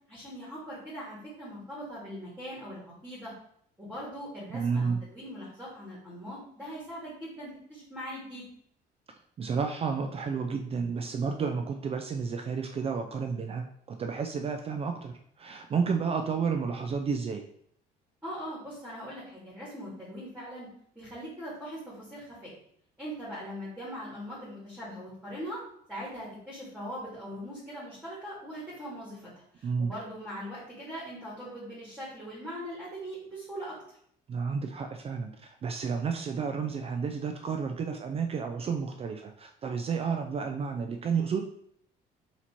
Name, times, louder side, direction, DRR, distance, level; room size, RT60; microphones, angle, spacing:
voice 1, 0.1-3.3 3.8-8.4 18.2-20.7 21.0-22.5 23.0-25.6 25.9-33.8, equal, 5° right, -7 dB, 1.9 m, -41 dB
voice 2, 4.5-5.0 9.4-17.4 29.6-29.9 34.3-41.4, right 5 dB, 35° right, 5 dB, 0.4 m, -31 dB
4.2 x 2.9 x 4.3 m, 0.67 s
cardioid pair, 110°, 17 cm